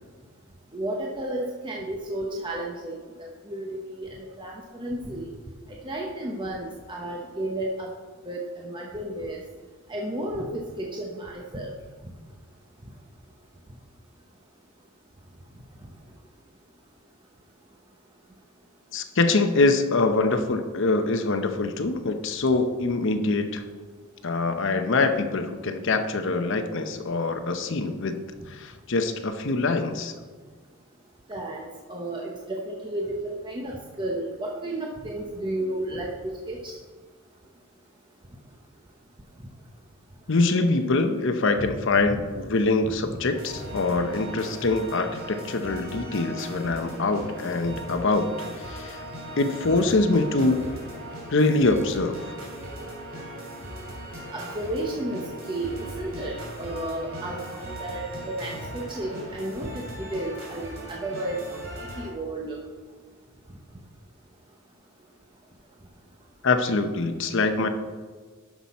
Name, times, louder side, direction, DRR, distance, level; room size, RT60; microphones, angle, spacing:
voice 1, 0.7-5.3 5.8-7.9 8.2-9.4 9.9-11.7 31.3-36.7 41.6-41.7 42.1-42.2 42.8-43.2 54.3-62.6, right 1 dB, 25° right, -2 dB, 0.9 m, -33 dB
voice 2, 18.9-23.6 24.2-28.2 28.5-30.1 40.3-49.0 49.4-50.6 51.3-52.4 66.4-67.7, left 3 dB, 60° left, 8 dB, 0.7 m, -24 dB
sound 1, 43.3-62.1, right 1 dB, 65° right, 2.7 m, -38 dB
11.5 x 5.9 x 4.2 m, 1.5 s
head